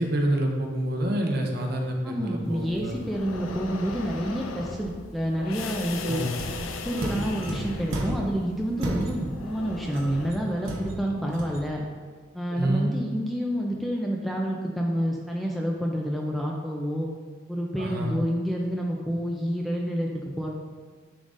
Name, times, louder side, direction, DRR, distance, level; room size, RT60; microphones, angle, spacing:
voice 1, 0.0-2.9 6.0-6.3 12.5-12.9 17.8-18.1, right 1 dB, 50° right, 2 dB, 0.7 m, -27 dB
voice 2, 2.0-6.2 6.8-11.8 12.3-17.1 17.5-20.1 20.4-20.5, equal, ahead, -1 dB, 0.4 m, -28 dB
sound 1, 2.4-10.3, left 3 dB, 85° left, 0.5 m, -38 dB
sound 2, 6.3-8.4 8.8-9.5 9.9-11.7, right 1 dB, 75° right, 0.9 m, -33 dB
9.9 x 3.8 x 2.5 m, 1.6 s
head